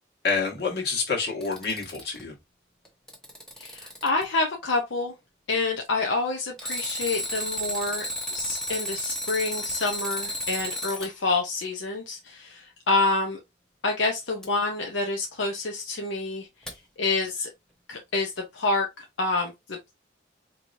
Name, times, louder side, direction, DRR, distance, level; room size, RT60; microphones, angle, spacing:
voice 1, 0.2-2.3, left 4 dB, 55° left, 1.7 m, -27 dB
Alarm, 1.2-2.2 2.9-4.2 6.6-11.1 14.4-14.5 16.7-16.8, equal, 5° left, 0.8 m, -32 dB
voice 2, 3.6-5.1 5.5-8.1 8.3-13.4 13.8-16.5 17.0-17.5 17.9-19.8, left 3 dB, 80° left, 0.8 m, -27 dB
4.6 x 3.0 x 2.6 m
head